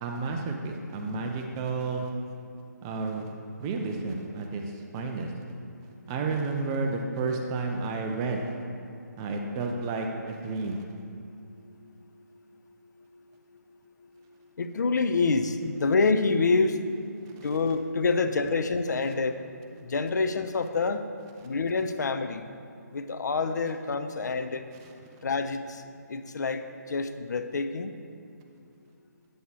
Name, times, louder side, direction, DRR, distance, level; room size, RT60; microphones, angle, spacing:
voice 1, 0.0-2.1 2.8-3.3 3.6-5.3 6.1-8.5 9.2-10.8 17.3-17.5 21.4-21.5 24.8-24.9, right 3 dB, 15° right, 2 dB, 0.3 m, -31 dB
voice 2, 14.6-16.8 17.4-19.4 19.8-21.1 21.4-22.4 22.9-24.6 25.2-25.8 26.1-26.6 26.9-27.9, left 4 dB, 70° left, 9 dB, 0.5 m, -27 dB
8.3 x 7.7 x 2.8 m, 2.6 s
hypercardioid pair, 160°, 10 cm